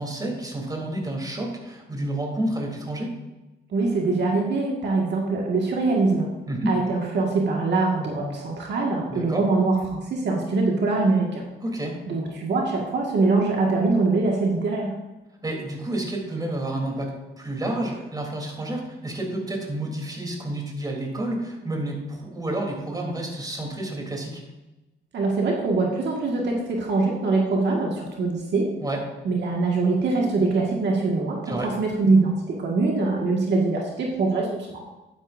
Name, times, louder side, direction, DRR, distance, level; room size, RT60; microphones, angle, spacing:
voice 1, 0.0-3.1 6.5-6.8 9.1-9.4 11.6-12.0 15.4-24.4 28.8-29.0 31.4-31.7, right 1 dB, 20° right, 0 dB, 3.3 m, -30 dB
voice 2, 3.7-6.3 6.7-11.4 12.1-14.9 25.1-28.7 29.3-34.8, right 3 dB, 60° right, -1 dB, 1.8 m, -23 dB
11.5 x 10.0 x 2.6 m, 1.0 s
cardioid pair, 90°, 20 cm